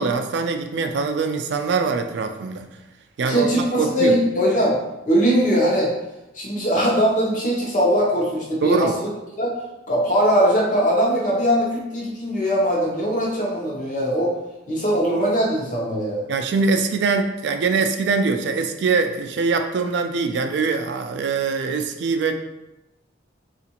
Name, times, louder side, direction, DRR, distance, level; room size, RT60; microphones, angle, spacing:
voice 1, 0.0-2.7 3.2-4.2 8.6-9.0 16.3-22.3, right 4 dB, 70° right, 6 dB, 0.3 m, -23 dB
voice 2, 3.2-4.8 5.0-5.9 6.3-9.1 9.4-9.5 9.9-14.3 14.7-16.3, equal, 45° left, -3 dB, 0.8 m, -20 dB
3.7 x 2.4 x 2.9 m, 0.97 s
head